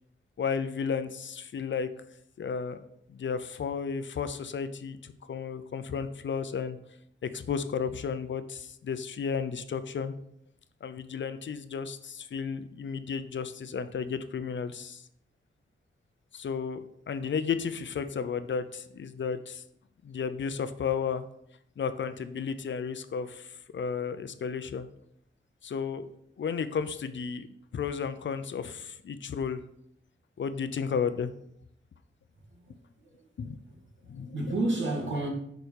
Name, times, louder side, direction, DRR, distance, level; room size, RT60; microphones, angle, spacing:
voice 1, 0.4-1.9 2.4-2.8 3.1-6.8 7.2-10.1 10.8-15.0 16.3-19.6 20.0-21.3 21.8-24.9 25.6-26.1 26.4-27.5 27.7-29.6 30.4-31.3 33.4-33.6 34.1-34.3, left 6 dB, 65° left, 0.7 m, -33 dB
voice 2, 32.5-33.3 33.7-35.3, right 2 dB, 65° right, 2.2 m, -32 dB
7.0 x 5.2 x 6.3 m
wide cardioid pair, 150°, 21 cm